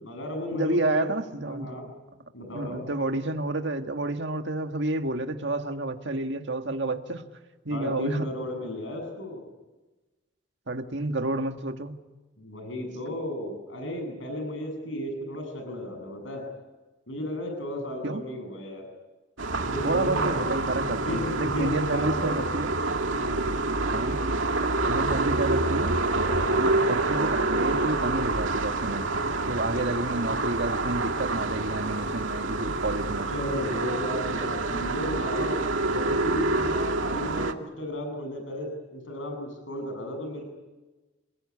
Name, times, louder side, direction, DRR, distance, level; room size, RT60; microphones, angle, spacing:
voice 1, 0.0-1.1 1.5-1.9 2.3-2.8 7.7-9.4 12.4-16.4 17.1-18.9 19.6-20.5 20.8-22.4 23.2-23.5 26.3-26.6 29.7-29.9 33.3-40.4, left 1 dB, 80° left, 7.8 m, -34 dB
voice 2, 0.5-1.9 2.5-7.3 7.7-8.3 10.7-11.9 13.1-13.2 18.0-18.2 19.8-22.8 23.9-24.2 24.9-26.0 26.6-33.3, right 2 dB, 65° right, 1.9 m, -30 dB
sound 1, 19.4-37.5, right 2 dB, 85° right, 2.2 m, -27 dB
29.0 x 21.0 x 9.8 m
head